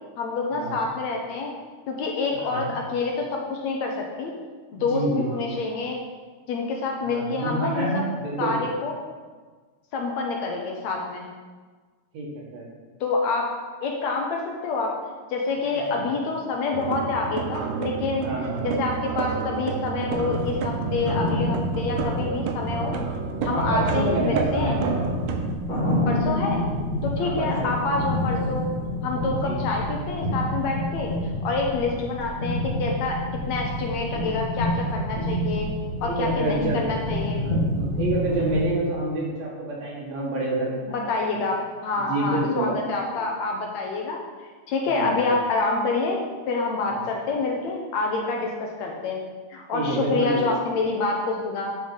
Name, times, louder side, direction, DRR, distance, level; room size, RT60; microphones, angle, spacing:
voice 1, 0.2-1.5 1.9-4.3 4.7-6.0 6.5-7.9 8.4-9.0 9.9-11.3 13.0-13.5 13.8-14.9 15.3-18.3 18.6-23.0 23.4-24.8 26.1-26.6 27.0-28.7 29.0-33.2 33.5-35.7 36.0-37.4 40.9-41.6 41.8-46.2 46.5-49.2 49.5-51.7, left 3 dB, 70° left, 0 dB, 2.0 m, -27 dB
voice 2, 2.4-2.7 4.7-5.3 7.1-8.6 12.1-12.7 15.9-16.0 18.2-18.7 23.5-25.0 27.2-27.7 29.4-29.6 31.9-32.0 36.0-36.9 37.4-41.4 42.0-43.3 45.0-45.2 49.7-50.4, right 2 dB, 60° right, -3 dB, 2.7 m, -28 dB
sound 1, 16.7-25.5, right 6 dB, 80° right, 2.1 m, -30 dB
sound 2, 20.0-38.6, left 1 dB, 45° left, 0.9 m, -28 dB
9.1 x 5.0 x 5.6 m, 1.4 s
omnidirectional pair, 3.6 m